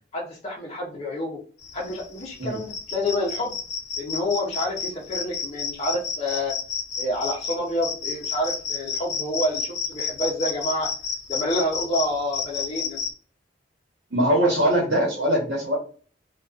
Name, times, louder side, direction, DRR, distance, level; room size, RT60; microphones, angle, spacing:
voice 1, 0.1-1.4 1.7-3.6 4.0-6.5 7.0-10.9 11.3-13.0, left 1 dB, 35° left, -4 dB, 0.6 m, -28 dB
sound 1, 1.6-13.1, left 6 dB, 75° left, 0.6 m, -31 dB
voice 2, 14.1-15.7, right 1 dB, 75° right, -4 dB, 1.0 m, -21 dB
2.5 x 2.2 x 2.3 m, 0.40 s
head